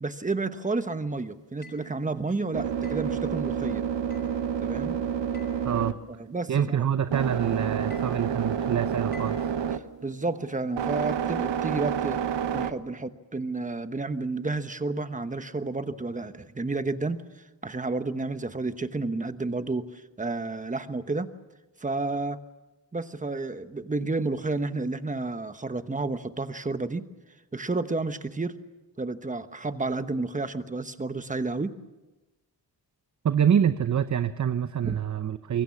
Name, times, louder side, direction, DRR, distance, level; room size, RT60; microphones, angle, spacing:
voice 1, 0.0-3.8 4.6-5.0 6.3-6.8 10.0-12.2 12.5-17.2 17.6-21.3 21.8-22.4 22.9-27.1 27.5-28.6 29.0-31.7 34.8-35.0, right 3 dB, 20° right, 10 dB, 1.1 m, -31 dB
sound 1, 1.6-2.0 2.8-3.2 4.1-4.4 5.3-5.7 6.5-6.8 7.9-8.2 9.1-9.5, left 4 dB, 25° left, 6.4 m, -51 dB
sound 2, 1.6-12.7, right 8 dB, 80° right, 1.2 m, -30 dB
voice 2, 5.6-6.0 6.5-9.4 33.2-35.6, right 8 dB, 40° right, 11 dB, 0.8 m, -26 dB
25.5 x 23.5 x 7.3 m, 1.1 s
wide cardioid pair, 140°, 43 cm